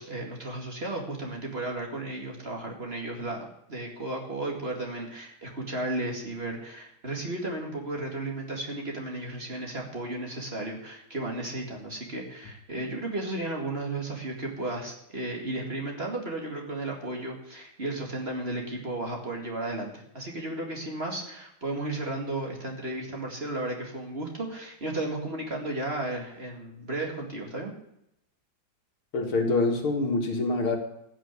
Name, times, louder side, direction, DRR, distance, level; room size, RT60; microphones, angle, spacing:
voice 1, 0.0-27.7, right 2 dB, 30° right, 0 dB, 2.4 m, -34 dB
voice 2, 29.1-30.8, left 3 dB, 80° left, 3 dB, 2.7 m, -25 dB
15.0 x 6.4 x 8.6 m, 0.79 s
omnidirectional pair, 2.3 m